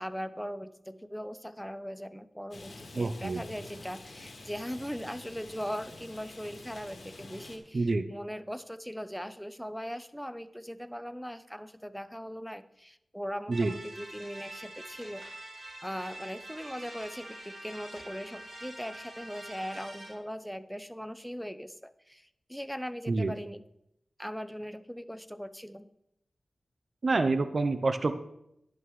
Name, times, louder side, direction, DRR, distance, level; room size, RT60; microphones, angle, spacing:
voice 1, 0.0-15.2 15.8-23.6 24.2-25.9, equal, ahead, 12 dB, 0.7 m, -40 dB
Rain, 2.5-7.6, left 2 dB, 70° left, 2.1 m, -48 dB
voice 2, 2.9-3.4 7.7-8.0 13.5-13.7 23.1-23.3 27.0-28.2, right 3 dB, 60° right, 10 dB, 0.6 m, -27 dB
sound 1, 13.5-20.1, right 1 dB, 85° right, 4.8 m, -45 dB
11.0 x 10.5 x 3.2 m, 0.81 s
cardioid pair, 45°, 0 cm